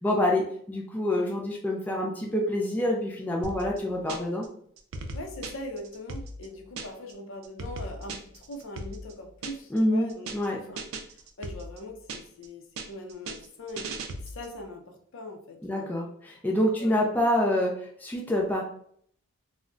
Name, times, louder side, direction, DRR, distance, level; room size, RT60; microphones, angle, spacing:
voice 1, 0.0-4.5 9.7-10.6 15.6-18.6, left 1 dB, 10° left, -2 dB, 0.3 m, -27 dB
sound 1, 3.4-4.5 4.8-7.1 7.4-9.8 10.1-10.5 10.8-12.5 12.8-14.6, right 2 dB, 65° right, 0.4 m, -38 dB
voice 2, 5.1-10.8 11.4-15.9 16.7-17.0, left 1 dB, 65° left, 4 dB, 0.5 m, -41 dB
2.3 x 2.1 x 3.6 m, 0.63 s
head